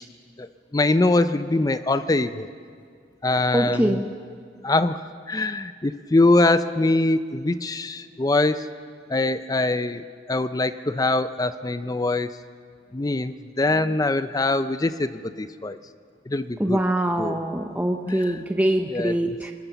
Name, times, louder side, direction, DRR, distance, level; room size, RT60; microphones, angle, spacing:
voice 1, 0.4-2.5 3.2-4.0 4.6-5.0 5.3-8.7 9.1-12.3 12.9-15.8 16.3-16.8 17.2-17.4 18.1-18.4 18.9-19.4, left 2 dB, 20° left, 12 dB, 0.5 m, -23 dB
voice 2, 3.5-4.0 16.6-19.5, right 1 dB, 10° right, 3 dB, 0.7 m, -23 dB
23.5 x 20.0 x 7.0 m, 2.1 s
head